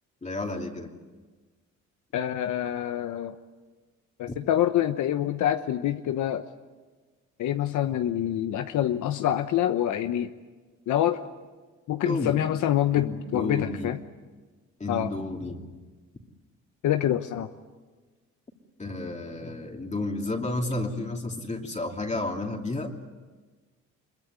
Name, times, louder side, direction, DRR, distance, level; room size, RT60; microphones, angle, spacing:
voice 1, 0.2-0.9 12.0-12.4 12.9-13.9 14.8-15.6 18.8-22.9, left 2 dB, 25° left, 1 dB, 2.8 m, -31 dB
voice 2, 2.1-3.4 4.2-6.5 7.4-10.3 10.9-11.2 11.9-14.0 14.9-15.1 16.8-17.5, left 11 dB, 80° left, 8 dB, 1.0 m, -26 dB
23.5 x 22.5 x 9.8 m, 1.3 s
cardioid pair, 90°, 30 cm